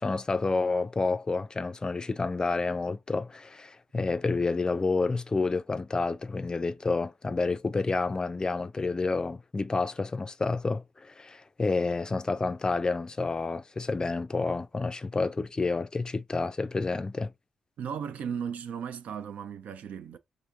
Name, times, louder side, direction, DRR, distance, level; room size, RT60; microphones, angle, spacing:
voice 1, 0.0-17.3, left 3 dB, 30° left, 0.4 m, -29 dB
voice 2, 17.8-20.2, right 7 dB, 65° right, 0.4 m, -36 dB
4.4 x 2.5 x 2.6 m
hypercardioid pair, 40°, 3 cm